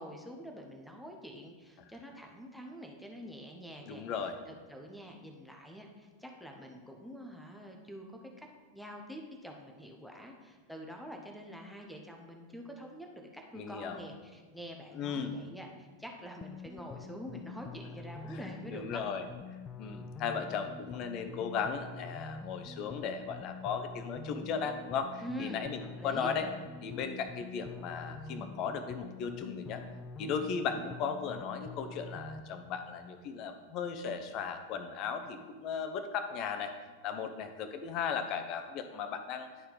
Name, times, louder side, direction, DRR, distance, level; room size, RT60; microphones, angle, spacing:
voice 1, 0.0-4.0 4.5-8.1 8.4-8.5 8.7-19.0 25.2-26.3, equal, ahead, 2 dB, 0.9 m, -46 dB
voice 2, 3.9-4.4 13.5-14.0 14.9-15.4 18.3-18.4 18.7-19.2 19.8-26.5 26.8-29.8 30.2-36.7 37.0-39.5, left 6 dB, 40° left, 8 dB, 0.7 m, -36 dB
sound 1, 16.4-32.4, left 4 dB, 20° left, 0.3 m, -46 dB
11.0 x 4.3 x 3.9 m, 1.4 s
figure-of-eight pair, 90°, 0 cm